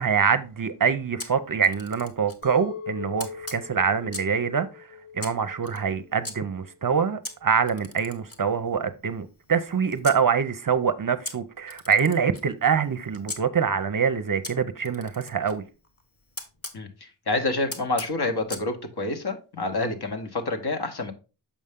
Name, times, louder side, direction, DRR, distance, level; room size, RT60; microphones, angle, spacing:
voice 1, 0.0-4.7 5.1-15.6, right 6 dB, 45° right, 0.6 m, -25 dB
Camera, 1.2-2.4 3.2-4.4 5.2-6.3 7.2-10.2 11.2-13.4 14.4-16.8 17.7-18.7, left 1 dB, 30° left, 1.4 m, -40 dB
Chink clink, 2.4-7.6, left 7 dB, 75° left, 1.4 m, -41 dB
voice 2, 16.7-21.1, left 2 dB, 55° left, 1.3 m, -28 dB
7.1 x 5.4 x 3.6 m
wide cardioid pair, 80°, 46 cm